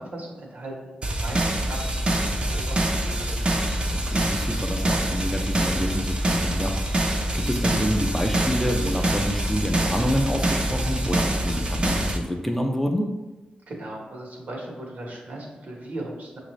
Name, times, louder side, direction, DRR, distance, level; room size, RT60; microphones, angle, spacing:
voice 1, 0.0-1.9 2.2-3.6 13.7-16.4, right 1 dB, 65° right, -1 dB, 1.2 m, -38 dB
sound 1, 1.0-12.2, right 1 dB, 35° right, 0.6 m, -25 dB
voice 2, 3.9-13.1, equal, 5° left, 1 dB, 0.5 m, -27 dB
6.0 x 2.6 x 3.1 m, 1.1 s
cardioid pair, 75°, 3 cm